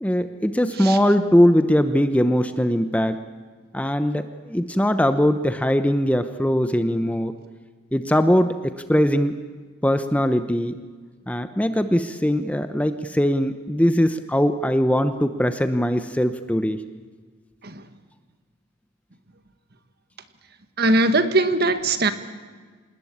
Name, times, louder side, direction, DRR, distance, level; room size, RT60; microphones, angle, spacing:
voice 1, 0.0-3.2 3.7-7.3 7.9-9.4 9.8-10.8 11.3-16.8, equal, 5° left, 9 dB, 0.8 m, -21 dB
voice 2, 20.8-22.1, right 2 dB, 50° right, 9 dB, 1.7 m, -20 dB
27.0 x 20.0 x 8.7 m, 1.5 s
head